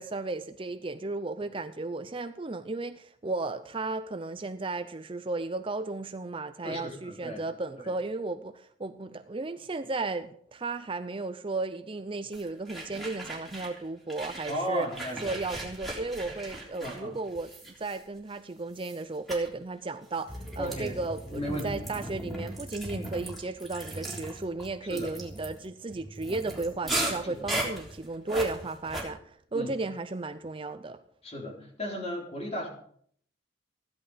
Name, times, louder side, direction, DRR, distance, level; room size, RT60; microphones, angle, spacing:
voice 1, 0.0-14.9 15.2-31.0, right 3 dB, 25° right, 10 dB, 0.5 m, -34 dB
voice 2, 6.6-7.4 7.8-7.9 14.5-15.3 16.8-17.2 20.6-21.0 21.3-21.8 24.9-25.1 26.8-27.7 29.5-29.7 31.2-32.7, equal, 30° left, -1 dB, 4.1 m, -35 dB
sound 1, 12.3-13.8 14.1-18.3 18.7-19.0 19.3-19.5 20.1-29.0, right 1 dB, ahead, 3.5 m, -37 dB
15.5 x 11.0 x 5.1 m, 0.62 s
head